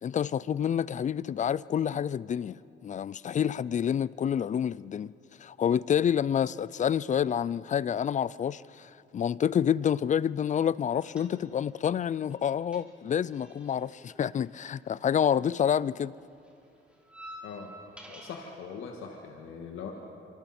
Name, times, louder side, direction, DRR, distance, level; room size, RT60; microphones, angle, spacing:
voice 1, 0.0-5.1 5.4-16.1, left 8 dB, 40° left, 0.4 m, -28 dB
sound 1, 11.0-11.8 12.0-15.4 15.7-18.6, equal, 5° right, 3.6 m, -50 dB
voice 2, 18.1-19.9, left 6 dB, 85° left, 1.9 m, -41 dB
25.5 x 25.0 x 4.4 m
cardioid pair, 90°, 20 cm